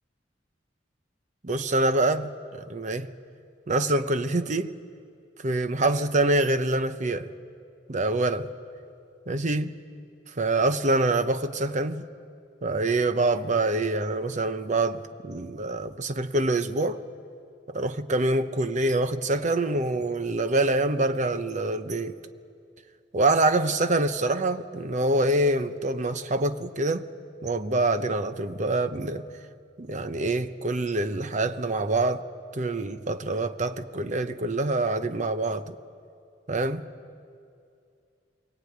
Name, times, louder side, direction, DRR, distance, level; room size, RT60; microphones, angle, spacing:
voice 1, 1.4-3.1 3.7-4.7 5.4-7.3 7.9-8.5 9.3-9.8 10.4-12.0 12.6-17.0 17.7-22.2 23.1-27.1 27.4-29.3 29.8-32.3 32.5-35.8 36.5-36.8, right 2 dB, 40° right, 0.9 m, -25 dB
22.5 x 20.0 x 9.4 m
head